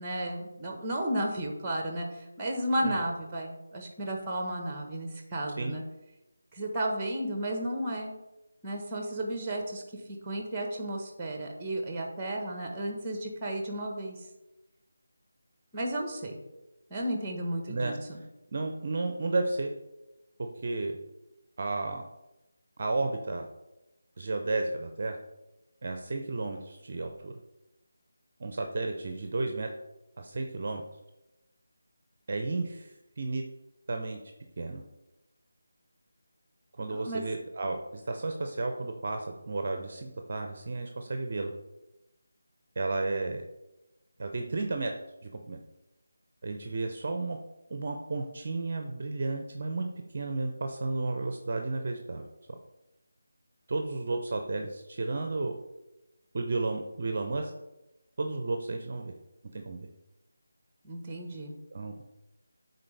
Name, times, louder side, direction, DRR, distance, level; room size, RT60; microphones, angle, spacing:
voice 1, 0.0-5.8 6.5-8.1 8.6-9.8 10.2-14.2 15.7-16.4 16.9-18.2 36.9-37.3 60.8-61.5, right 1 dB, 15° right, 3 dB, 1.3 m, -33 dB
voice 2, 18.5-19.7 20.4-21.0 21.6-22.0 22.8-23.5 24.2-25.2 25.8-27.3 28.4-29.7 30.2-30.8 32.3-32.9 33.2-33.4 33.9-34.2 34.6-34.8 36.8-41.5 42.8-43.4 44.2-44.9 45.5-45.6 46.4-47.4 47.7-49.9 50.1-52.2 53.7-55.6 56.3-57.5 58.2-59.1 59.5-59.9 61.7-62.1, right 3 dB, 45° right, 4 dB, 0.6 m, -32 dB
10.5 x 4.1 x 3.4 m, 0.98 s
figure-of-eight pair, 160°, 0 cm